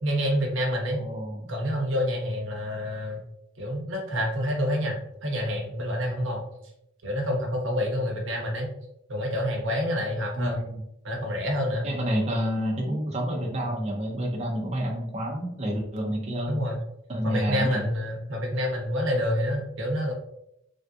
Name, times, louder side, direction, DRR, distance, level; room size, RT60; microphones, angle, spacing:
voice 1, 0.0-1.0 1.5-3.2 3.6-6.4 7.0-8.7 9.1-10.6 11.0-11.9 16.5-16.8 17.2-20.1, equal, 65° right, 0 dB, 0.8 m, -28 dB
voice 2, 1.0-1.5 10.4-10.7 11.8-16.6 17.1-17.8, equal, 35° right, -1 dB, 0.5 m, -29 dB
3.4 x 2.6 x 2.3 m, 0.78 s
head